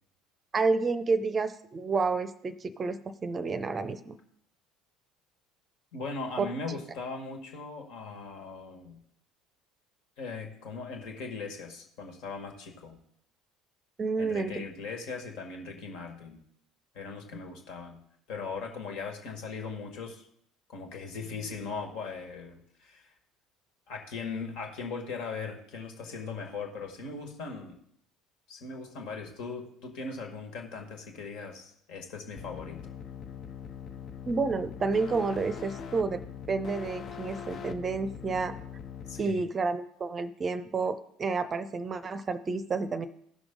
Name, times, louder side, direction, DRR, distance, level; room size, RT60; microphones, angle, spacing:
voice 1, 0.5-4.2 6.4-6.5 14.0-14.6 34.3-36.2 36.5-38.6 39.2-43.1, right 4 dB, 30° right, 12 dB, 0.7 m, -30 dB
voice 2, 5.9-9.0 10.2-13.0 14.2-16.4 16.9-18.0 18.3-20.3 20.7-23.1 23.9-27.8 28.5-32.8 39.1-39.4, left 4 dB, 55° left, 3 dB, 1.8 m, -39 dB
sound 1, 32.4-39.2, left 7 dB, 40° left, 0.8 m, -42 dB
16.0 x 6.1 x 3.8 m, 0.70 s
figure-of-eight pair, 60°, 0 cm